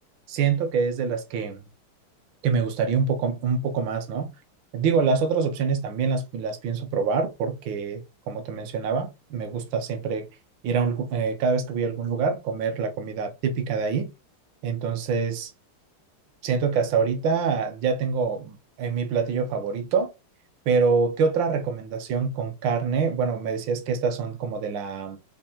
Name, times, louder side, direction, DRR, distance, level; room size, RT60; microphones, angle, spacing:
voice 1, 0.3-1.6 2.4-4.3 4.7-10.3 10.6-14.1 14.6-15.5 16.4-20.1 20.7-25.2, right 5 dB, 70° right, 1.4 m, -25 dB
5.4 x 2.1 x 2.8 m
omnidirectional pair, 2.4 m